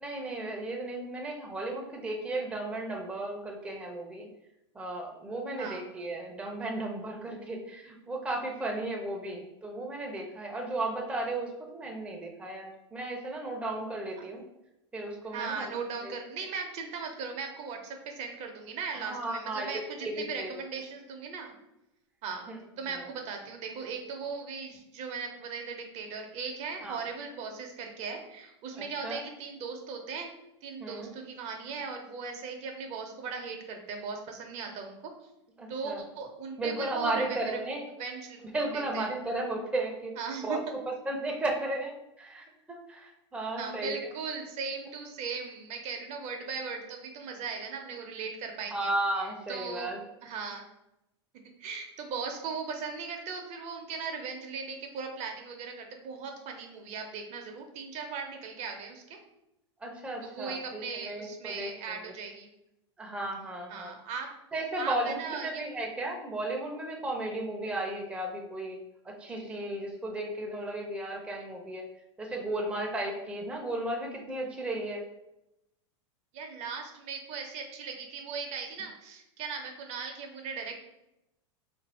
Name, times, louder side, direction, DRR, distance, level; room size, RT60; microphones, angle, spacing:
voice 1, 0.0-4.3 4.7-14.4 14.9-15.7 16.0-16.1 19.1-20.5 22.5-22.6 22.9-23.0 26.8-27.0 29.0-29.2 30.8-31.1 35.6-36.0 36.6-37.8 38.5-40.1 40.4-40.6 40.9-44.1 48.7-50.0 59.8-61.7 63.0-64.0 64.5-65.2 65.4-68.8 69.0-71.8 72.2-75.0, right 2 dB, 5° right, 0 dB, 0.6 m, -34 dB
voice 2, 15.2-21.5 22.2-22.5 22.8-30.3 30.6-35.0 35.7-37.6 38.0-38.4 38.7-39.1 40.2-40.6 43.6-48.9 49.1-49.9 50.2-50.6 51.6-59.2 60.2-62.5 63.7-64.3 64.8-65.6 76.3-80.7, right 5 dB, 45° right, 4 dB, 0.7 m, -38 dB
2.7 x 2.6 x 4.2 m, 0.88 s
hypercardioid pair, 110°, 16 cm